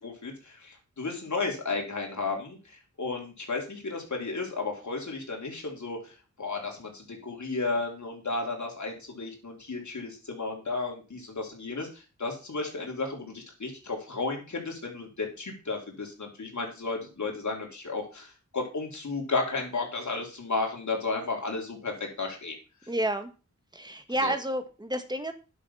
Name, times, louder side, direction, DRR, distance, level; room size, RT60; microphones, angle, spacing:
voice 1, 0.0-2.6 3.0-6.1 6.4-22.6 24.2-24.3, left 3 dB, 70° left, 0 dB, 3.7 m, -33 dB
voice 2, 22.9-23.3 23.7-25.3, right 1 dB, 15° right, 7 dB, 1.8 m, -30 dB
11.0 x 6.5 x 5.7 m, 0.32 s
wide cardioid pair, 75°, 30 cm